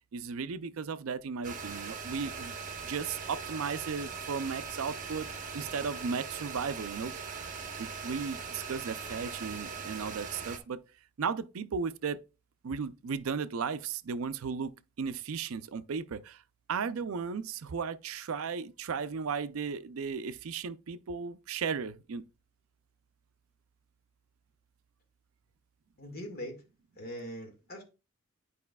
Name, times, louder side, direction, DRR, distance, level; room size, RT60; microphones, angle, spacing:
voice 1, 0.1-2.5 2.8-5.3 5.5-7.1 7.8-10.8 11.2-12.2 12.6-16.4 16.7-22.2, right 5 dB, 80° right, 0.5 m, -35 dB
sound 1, 1.4-10.6, right 5 dB, 40° right, 1.1 m, -40 dB
voice 2, 26.0-26.6 27.0-27.8, equal, 45° left, 1.8 m, -41 dB
10.5 x 4.8 x 2.3 m
head